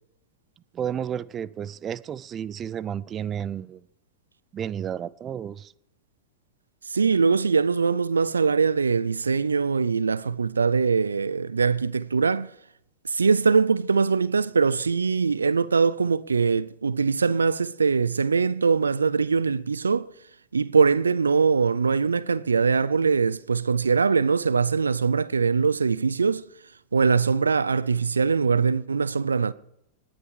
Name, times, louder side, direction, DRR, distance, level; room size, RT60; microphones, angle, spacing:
voice 1, 0.7-3.8 4.5-5.7, right 9 dB, 30° right, 0.5 m, -32 dB
voice 2, 6.9-12.5 13.1-20.1 20.5-26.4 26.9-29.5, right 5 dB, 90° right, 0.5 m, -22 dB
19.5 x 10.0 x 4.8 m
hypercardioid pair, 95°, 0 cm